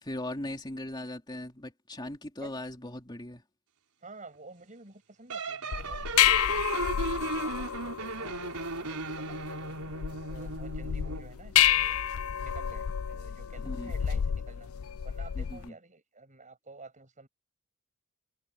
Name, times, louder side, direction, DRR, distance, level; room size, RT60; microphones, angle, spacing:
voice 1, 0.0-3.4 13.6-13.9 15.3-15.7, left 1 dB, 20° left, 3.0 m, -39 dB
voice 2, 4.0-9.8 10.3-12.0 12.3-14.7 15.0-17.3, right 3 dB, 35° right, 6.9 m, -51 dB
sound 1, 5.3-11.3, right 3 dB, 85° right, 4.8 m, -36 dB
sound 2, 5.7-15.7, left 10 dB, 65° left, 0.4 m, -30 dB
head